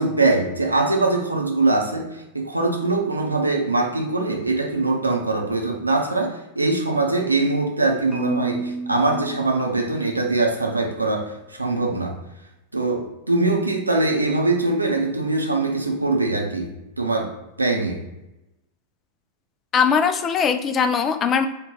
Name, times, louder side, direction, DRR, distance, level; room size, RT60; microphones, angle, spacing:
voice 1, 0.0-12.1 12.7-18.0, right 2 dB, 80° right, 2 dB, 0.6 m, -22 dB
Marimba xylophone, 8.1-10.3, right 5 dB, 5° right, 1.0 m, -31 dB
voice 2, 19.7-21.5, left 6 dB, 25° left, 8 dB, 0.3 m, -20 dB
3.2 x 2.2 x 3.9 m, 0.95 s
figure-of-eight pair, 90°, 0 cm